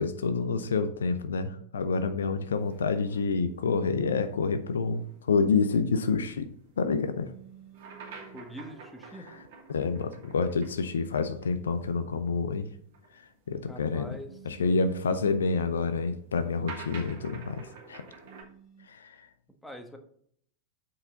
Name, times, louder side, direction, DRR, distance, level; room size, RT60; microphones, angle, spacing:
voice 1, 0.0-7.3 8.2-8.3 9.7-12.7 13.1-14.2 14.5-18.0 18.9-19.3, left 4 dB, 65° left, 10 dB, 0.6 m, -28 dB
sound 1, 2.6-11.6 11.8-11.9 12.8-18.4, right 4 dB, 55° right, 2.5 m, -50 dB
sound 2, 7.2-8.5 10.7-12.1 14.2-15.8 18.2-18.9, right 10 dB, 25° left, 2.3 m, -53 dB
voice 2, 8.3-9.3 13.7-14.3 19.6-20.0, equal, 5° left, 5 dB, 1.3 m, -43 dB
7.9 x 5.7 x 3.9 m, 0.64 s
figure-of-eight pair, 90°, 0 cm